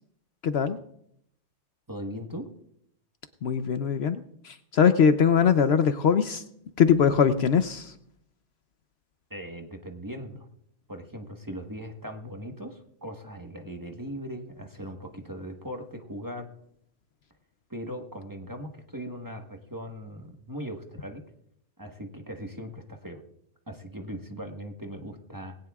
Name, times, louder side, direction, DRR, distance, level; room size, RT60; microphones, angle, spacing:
voice 1, 0.4-0.8 3.4-6.4 6.8-7.9, left 7 dB, 65° left, 10 dB, 0.9 m, -22 dB
voice 2, 1.9-2.5 9.3-10.4 10.9-16.5 17.7-21.2 21.8-23.2 23.7-25.6, equal, 15° right, 3 dB, 1.2 m, -39 dB
20.0 x 17.0 x 2.4 m, 0.72 s
omnidirectional pair, 1.2 m